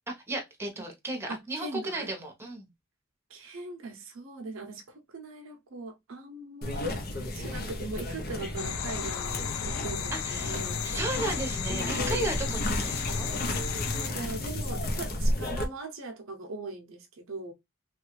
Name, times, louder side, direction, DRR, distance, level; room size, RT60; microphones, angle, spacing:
voice 1, 0.1-2.7 10.1-13.3, right 2 dB, 10° right, 0.8 m, -35 dB
voice 2, 1.3-2.1 3.3-11.0 12.5-12.8 13.6-17.5, right 3 dB, 80° right, 0.6 m, -41 dB
sound 1, 6.6-15.7, left 1 dB, 45° left, 0.6 m, -33 dB
sound 2, 8.6-14.1, left 7 dB, 85° left, 0.4 m, -34 dB
3.1 x 2.3 x 3.0 m
head